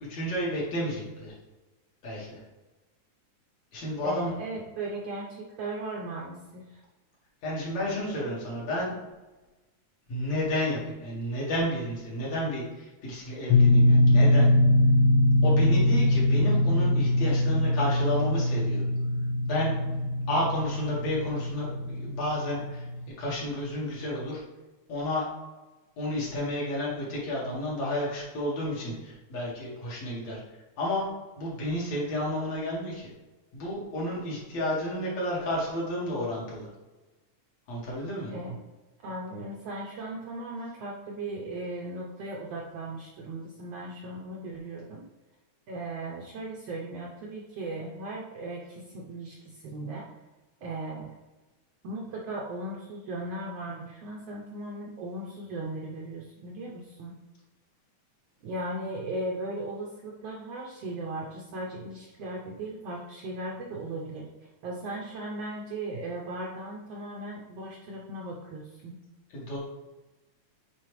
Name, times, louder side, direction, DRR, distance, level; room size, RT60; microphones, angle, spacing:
voice 1, 0.1-1.3 2.0-2.4 3.7-4.3 7.4-8.9 10.1-14.5 15.4-18.8 19.4-19.7 20.3-22.8 23.2-24.4 24.9-25.3 26.0-31.1 31.4-33.1 33.5-36.7 37.7-38.3 69.3-69.6, left 1 dB, 60° left, -5 dB, 3.0 m, -31 dB
voice 2, 4.0-6.8 38.3-38.6 39.0-45.1 45.7-50.1 50.6-51.1 51.8-57.2 58.4-69.0, right 2 dB, 70° right, -2 dB, 1.5 m, -37 dB
sound 1, 13.5-23.1, left 1 dB, 75° left, 1.7 m, -23 dB
8.8 x 4.3 x 3.2 m, 1.2 s
omnidirectional pair, 3.6 m